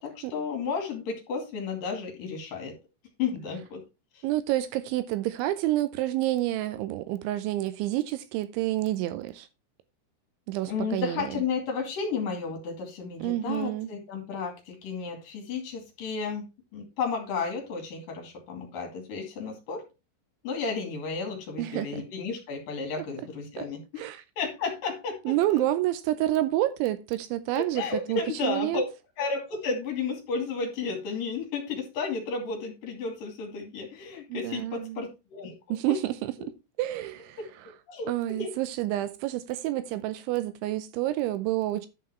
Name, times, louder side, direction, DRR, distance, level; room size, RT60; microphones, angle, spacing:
voice 1, 0.0-2.7 3.2-3.8 4.1-4.3 10.7-16.4 16.7-19.8 20.4-24.1 24.4-25.6 27.5-28.8 29.2-36.0 36.4-36.5 37.4-37.5 37.9-38.5, left 5 dB, 50° left, 3.4 m, -33 dB
voice 2, 4.2-9.5 10.5-11.4 13.2-13.9 21.6-22.0 23.6-23.7 24.0-24.2 25.3-28.8 34.3-35.0 35.7-36.3 36.8-37.4 38.1-41.9, right 15 dB, 85° right, 2.7 m, -29 dB
11.0 x 5.8 x 4.3 m
omnidirectional pair, 5.9 m